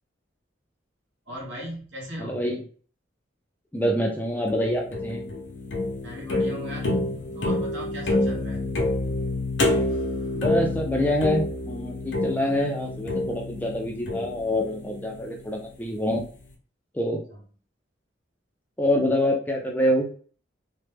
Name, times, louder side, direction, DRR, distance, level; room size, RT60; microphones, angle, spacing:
voice 1, 1.3-2.4 6.0-7.0 7.3-8.7 17.3-17.4, equal, 75° right, -2 dB, 1.2 m, -37 dB
voice 2, 2.2-2.6 3.7-5.3 10.4-16.2 16.9-17.2 18.8-20.1, equal, 10° left, 1 dB, 0.4 m, -26 dB
sound 1, 4.5-15.7, left 2 dB, 65° left, 0.7 m, -28 dB
3.1 x 2.1 x 3.3 m, 0.43 s
head